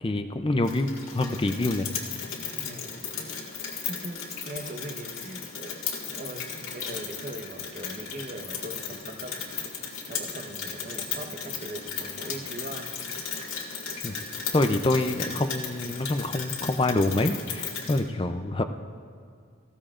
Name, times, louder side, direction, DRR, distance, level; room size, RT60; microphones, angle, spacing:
voice 1, 0.0-1.9 14.0-14.2 14.5-18.6, left 2 dB, 25° left, 7 dB, 0.4 m, -26 dB
Rain, 0.6-18.0, left 6 dB, 85° left, 1.9 m, -36 dB
voice 2, 2.5-2.9 3.7-9.5 10.1-13.5, right 1 dB, 40° right, 4 dB, 1.0 m, -41 dB
19.5 x 15.5 x 2.5 m, 2.3 s
head